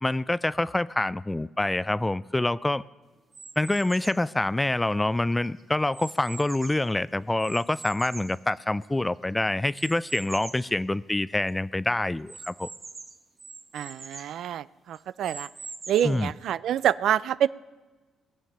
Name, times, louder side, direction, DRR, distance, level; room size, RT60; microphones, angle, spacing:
voice 1, 0.0-2.8 3.6-12.7 16.0-16.3, left 2 dB, 15° left, 0.3 m, -26 dB
sound 1, 3.3-4.3 4.9-6.9 7.4-9.1 9.7-10.7 11.2-11.3 11.5-11.6 12.3-14.4 14.9-16.3, right 4 dB, 35° right, 0.9 m, -43 dB
voice 2, 13.7-15.5 15.9-17.5, right 10 dB, 75° right, 0.3 m, -26 dB
20.0 x 7.3 x 6.7 m
cardioid pair, 90°, 0 cm